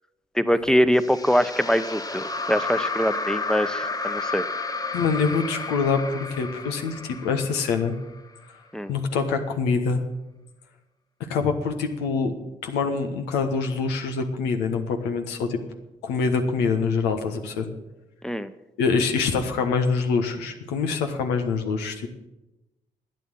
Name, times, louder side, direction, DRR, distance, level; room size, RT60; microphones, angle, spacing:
voice 1, 0.3-4.4 8.7-8.9 18.2-18.5, equal, 5° left, 12 dB, 1.0 m, -23 dB
sound 1, 1.0-8.3, left 3 dB, 20° left, 1.1 m, -31 dB
voice 2, 4.9-7.9 8.9-10.0 11.2-12.3 12.6-15.6 16.0-17.7 18.8-22.1, left 5 dB, 85° left, 5 dB, 1.2 m, -25 dB
12.0 x 9.2 x 7.7 m, 1.0 s
hypercardioid pair, 40°, 17 cm